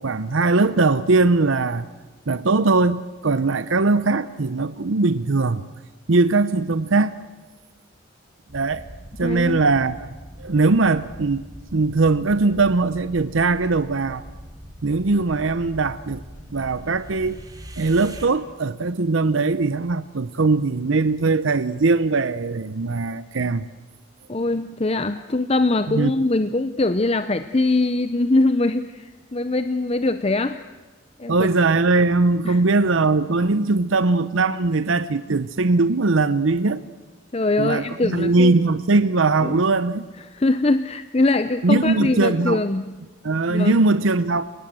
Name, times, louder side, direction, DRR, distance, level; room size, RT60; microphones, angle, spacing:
voice 1, 0.0-1.8 2.3-5.7 6.1-7.2 8.5-8.8 9.2-10.1 10.4-11.5 11.7-14.2 14.8-16.2 16.5-17.4 17.8-23.7 25.9-26.1 31.3-36.8 37.6-40.0 41.6-42.6 43.2-44.4, right 3 dB, 75° right, 0.7 m, -20 dB
sound 1, 8.5-18.3, equal, 20° right, 2.6 m, -41 dB
voice 2, 9.2-9.6 24.3-30.6 31.2-31.5 32.4-32.6 37.3-38.5 39.4-39.6 40.3-42.9 43.5-43.8, left 2 dB, 30° left, 0.7 m, -22 dB
30.0 x 19.0 x 7.7 m
head